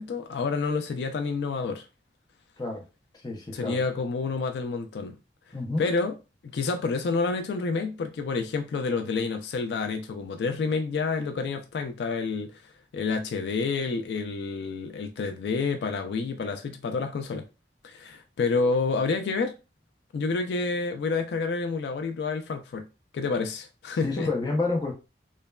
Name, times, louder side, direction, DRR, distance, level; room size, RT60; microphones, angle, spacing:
voice 1, 0.0-1.8 3.5-5.2 5.8-6.1 6.4-12.6 12.9-17.4 17.8-19.5 20.1-22.9 23.1-24.3, left 4 dB, 75° left, 0.3 m, -29 dB
voice 2, 3.2-3.8 5.5-5.8 24.0-24.9, left 3 dB, 25° left, 0.6 m, -29 dB
3.1 x 2.1 x 2.2 m
head